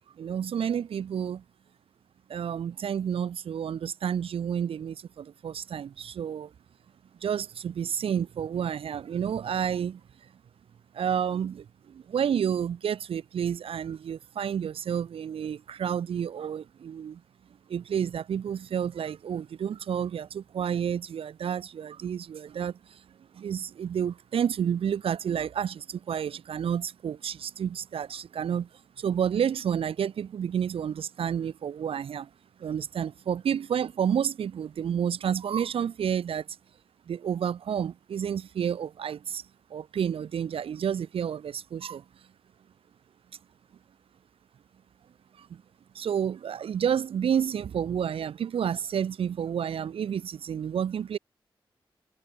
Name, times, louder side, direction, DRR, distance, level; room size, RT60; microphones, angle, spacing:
voice 1, 0.2-1.4 2.3-6.5 7.2-10.0 10.9-17.2 17.7-23.0 23.3-28.7 29.0-32.3 32.6-36.5 37.1-39.4 39.7-42.0 45.4-45.6 45.9-51.2, right 8 dB, 90° right, 6.7 m, -30 dB
cardioid pair, 50°, 9 cm